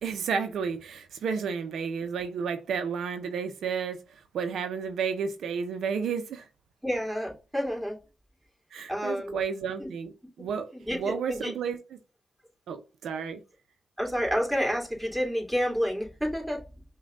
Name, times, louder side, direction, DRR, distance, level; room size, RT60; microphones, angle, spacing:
voice 1, 0.0-6.5 8.7-12.0 12.7-13.4, right 6 dB, 80° right, 0.5 m, -32 dB
voice 2, 6.8-8.0 8.9-9.4 9.8-9.9 10.7-11.5 14.0-16.6, equal, 5° right, 2.5 m, -29 dB
5.1 x 2.2 x 3.7 m
supercardioid pair, 55°, 0 cm